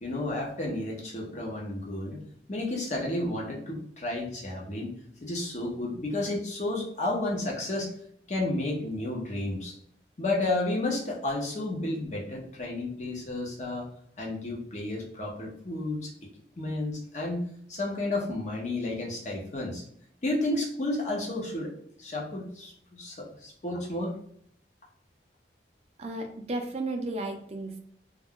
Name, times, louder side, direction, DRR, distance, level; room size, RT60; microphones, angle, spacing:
voice 1, 0.0-2.2 2.5-4.9 5.2-7.9 8.3-9.8 10.2-13.9 14.2-16.1 16.6-17.4 17.7-19.8 20.2-21.7 22.0-24.1, left 2 dB, 40° left, -2 dB, 0.7 m, -32 dB
voice 2, 26.0-27.8, right 2 dB, 35° right, 4 dB, 0.4 m, -33 dB
2.3 x 2.2 x 3.6 m, 0.64 s
head